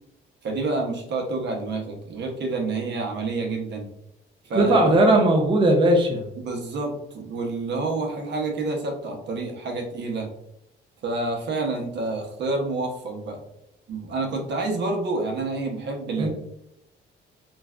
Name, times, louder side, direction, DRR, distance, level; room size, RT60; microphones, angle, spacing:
voice 1, 0.4-3.9 4.4-4.9 6.4-10.3 11.0-13.4 13.9-16.3, right 3 dB, 60° right, 2 dB, 0.8 m, -28 dB
voice 2, 4.5-6.2 16.2-16.3, right 1 dB, 25° right, 1 dB, 0.5 m, -18 dB
3.2 x 2.5 x 2.3 m, 0.81 s
cardioid pair, 90°, 20 cm